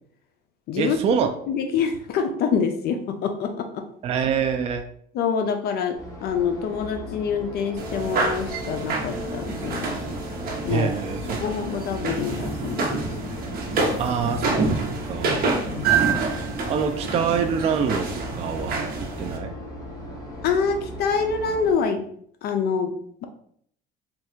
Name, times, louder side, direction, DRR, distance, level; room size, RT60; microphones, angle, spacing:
voice 1, 0.8-1.3 4.0-4.8 10.7-11.4 14.0-15.5 16.7-19.5, right 6 dB, 30° right, 6 dB, 0.3 m, -26 dB
voice 2, 1.5-3.9 5.1-9.9 10.6-10.9 11.4-13.1 15.7-16.0 20.4-22.0 22.4-23.0, left 6 dB, 50° left, 6 dB, 0.5 m, -26 dB
sound 1, 5.9-21.7, equal, 15° left, 1.4 m, -38 dB
sound 2, 7.8-19.4, right 4 dB, 45° right, 0.9 m, -27 dB
3.3 x 2.4 x 4.4 m, 0.65 s
cardioid pair, 135°, 21 cm